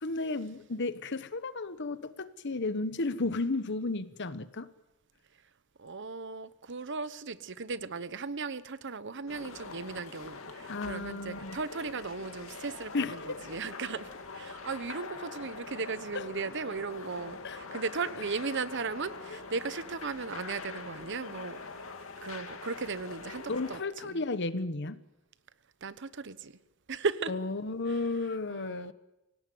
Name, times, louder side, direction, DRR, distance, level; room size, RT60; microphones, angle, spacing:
voice 1, 0.0-4.7 10.7-11.6 12.9-13.5 16.1-16.2 17.4-17.6 23.5-25.0 27.3-28.9, left 3 dB, 60° left, 14 dB, 1.1 m, -33 dB
voice 2, 5.8-14.1 14.3-21.6 22.2-24.2 25.8-26.5 26.9-27.3 28.5-28.9, right 4 dB, 60° right, 15 dB, 1.0 m, -36 dB
sound 1, 9.3-23.8, left 4 dB, 75° left, 2.7 m, -44 dB
25.5 x 17.5 x 9.4 m, 0.99 s
head